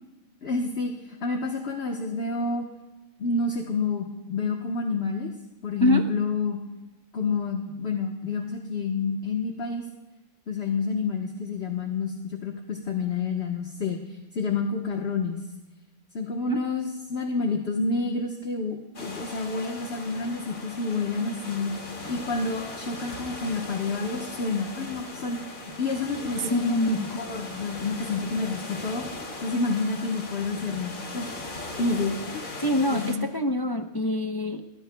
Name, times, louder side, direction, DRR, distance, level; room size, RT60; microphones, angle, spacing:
voice 1, 0.4-2.6 3.2-5.3 5.6-6.6 7.1-9.8 10.5-15.4 16.1-21.7 22.1-29.1 29.4-31.3 31.8-32.5 32.9-33.3, left 4 dB, 50° left, 1 dB, 1.4 m, -29 dB
sound 1, 18.9-33.2, left 2 dB, 70° left, 2.7 m, -39 dB
voice 2, 26.5-27.1 32.6-34.6, left 1 dB, 25° left, 4 dB, 0.5 m, -25 dB
28.0 x 21.0 x 2.3 m, 1.1 s
omnidirectional pair, 1.4 m